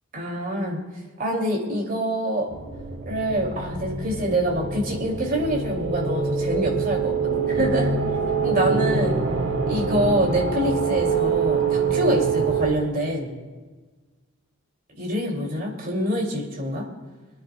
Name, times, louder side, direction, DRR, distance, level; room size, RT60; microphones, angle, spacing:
voice 1, 0.1-0.8 1.2-2.5 3.1-7.9 8.4-9.2 9.7-13.4 15.0-16.8, right 1 dB, 45° right, -1 dB, 2.9 m, -25 dB
sound 1, 2.5-12.7, right 5 dB, 75° right, 1.5 m, -25 dB
28.0 x 10.0 x 2.4 m, 1.3 s
head